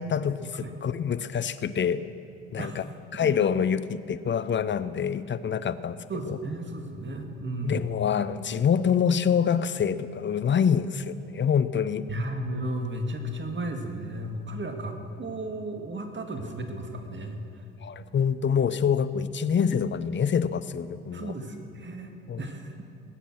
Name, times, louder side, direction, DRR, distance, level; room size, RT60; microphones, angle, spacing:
voice 1, 0.0-2.0 2.5-2.8 3.1-6.0 6.3-6.4 7.6-12.0 17.8-21.3 22.3-22.4, left 7 dB, 35° left, 14 dB, 0.7 m, -26 dB
voice 2, 2.6-3.3 6.1-7.9 12.1-17.6 21.1-22.1 22.4-22.7, right 1 dB, 35° right, 4 dB, 2.0 m, -34 dB
21.0 x 8.3 x 6.1 m, 2.6 s
hypercardioid pair, 55°, 32 cm